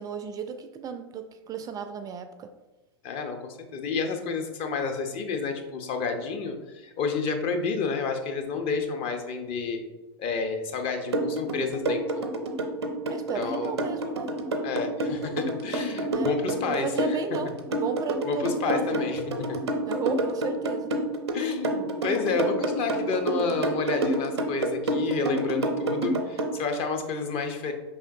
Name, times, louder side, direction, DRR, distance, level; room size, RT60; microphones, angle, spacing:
voice 1, 0.0-2.5 13.1-14.3 16.0-16.3 16.7-19.1 19.9-20.9, right 5 dB, 25° right, 8 dB, 0.3 m, -34 dB
voice 2, 3.0-9.8 10.2-12.3 13.3-13.7 14.6-17.2 18.3-19.6 21.3-27.7, left 4 dB, 45° left, 5 dB, 0.7 m, -30 dB
sound 1, 11.1-26.5, right 1 dB, 85° right, 0.6 m, -28 dB
5.1 x 3.5 x 2.7 m, 1.1 s
hypercardioid pair, 95°, 14 cm